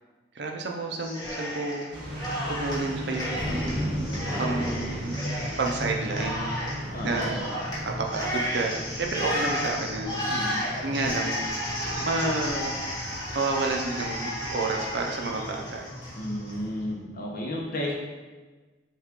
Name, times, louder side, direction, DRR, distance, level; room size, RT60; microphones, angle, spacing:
voice 1, 0.3-2.1 2.5-3.8 4.4-5.2 5.6-6.5 7.0-7.4 7.8-10.2 10.8-11.4 12.0-15.8, right 3 dB, 65° right, 2 dB, 0.6 m, -30 dB
Cheering, 1.0-1.9 2.2-16.5, equal, 25° left, 1.2 m, -33 dB
sound 1, 1.9-16.9, equal, 30° right, 1.0 m, -37 dB
sound 2, 3.3-8.7 16.0-16.2 16.5-16.7, equal, 10° right, 0.6 m, -36 dB
voice 2, 6.9-7.4 10.3-10.7 16.2-17.9, left 1 dB, 50° left, -2 dB, 0.9 m, -33 dB
5.8 x 2.5 x 3.6 m, 1.3 s
head